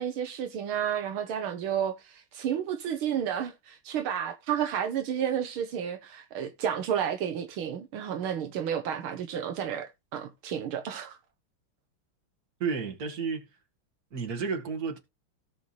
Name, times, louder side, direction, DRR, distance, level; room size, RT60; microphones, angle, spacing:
voice 1, 0.0-11.2, right 9 dB, 80° right, 1.9 m, -31 dB
voice 2, 12.6-13.5 14.1-15.0, right 5 dB, 45° right, 2.4 m, -31 dB
17.0 x 5.7 x 3.2 m
omnidirectional pair, 2.3 m